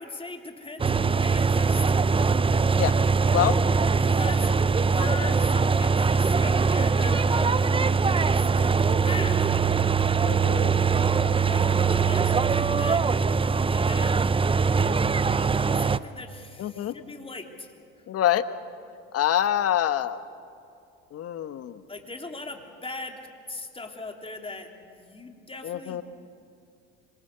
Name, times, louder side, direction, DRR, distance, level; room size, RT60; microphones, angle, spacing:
voice 1, 0.0-1.8 4.0-4.5 4.9-7.7 8.0-8.7 9.0-9.4 11.4-13.0 13.6-14.2 15.5-17.7 21.9-23.2 23.5-26.0, left 3 dB, 20° left, 3 dB, 3.5 m, -39 dB
sound 1, 0.8-16.0, right 5 dB, 15° right, 0.7 m, -22 dB
voice 2, 10.2-10.7 16.6-16.9 18.1-18.4 19.1-20.2 21.1-21.8 25.6-26.0, left 11 dB, 50° left, 12 dB, 1.3 m, -25 dB
26.0 x 24.0 x 6.9 m, 2.5 s
hypercardioid pair, 70°, 31 cm